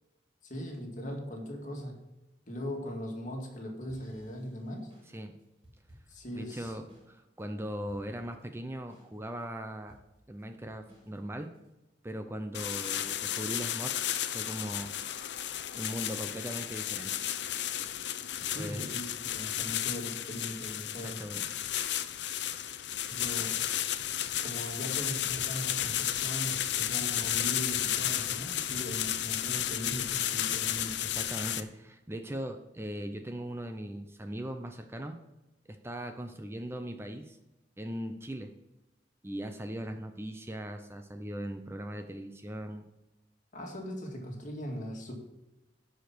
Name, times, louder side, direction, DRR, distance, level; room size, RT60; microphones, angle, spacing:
voice 1, 0.4-2.0 2.5-4.9 6.1-6.7 18.5-21.2 23.1-23.7 24.4-31.0 43.5-45.1, equal, 45° left, 1 dB, 2.1 m, -39 dB
sound 1, 3.9-7.1 7.4-7.5 7.9-8.4 8.9-9.4 9.9-11.7, equal, 30° right, 4.1 m, -59 dB
voice 2, 6.3-10.0 10.3-11.5 12.0-14.9 15.7-17.1 18.6-18.9 21.0-21.5 31.0-35.2 35.7-37.4 37.8-38.5 39.2-42.8, equal, 15° right, 6 dB, 0.6 m, -39 dB
sound 2, 12.5-31.6, left 11 dB, 75° left, 0.6 m, -33 dB
11.5 x 5.1 x 6.0 m, 1.0 s
head